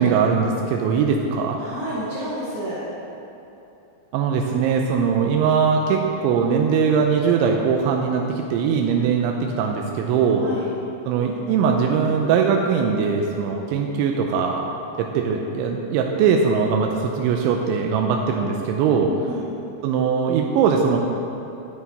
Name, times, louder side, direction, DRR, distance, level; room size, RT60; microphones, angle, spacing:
voice 1, 0.0-1.6 4.1-10.5 11.1-14.6 15.0-19.1 19.8-21.0, right 6 dB, 85° right, 1 dB, 3.0 m, -21 dB
voice 2, 1.6-2.8 10.4-10.7 19.0-19.5, equal, 60° right, -8 dB, 2.1 m, -30 dB
10.5 x 9.2 x 4.1 m, 2.8 s
omnidirectional pair, 5.3 m